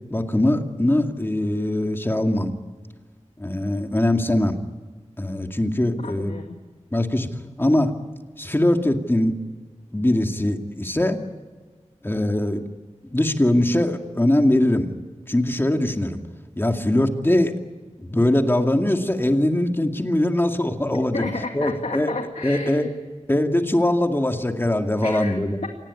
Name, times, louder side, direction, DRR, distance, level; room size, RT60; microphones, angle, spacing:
voice 1, 0.1-2.5 3.4-4.6 5.2-6.3 6.9-7.3 7.6-7.9 8.4-9.3 9.9-11.2 12.0-12.6 13.0-14.9 15.3-16.2 16.6-17.5 18.0-21.2 21.5-22.1 22.4-22.9 23.3-25.6, left 1 dB, 20° left, 5 dB, 2.3 m, -21 dB
voice 2, 6.0-6.5 21.1-22.9 25.0-25.7, left 3 dB, 70° left, 4 dB, 2.1 m, -32 dB
26.5 x 19.5 x 9.7 m, 1.4 s
wide cardioid pair, 80°, 12 cm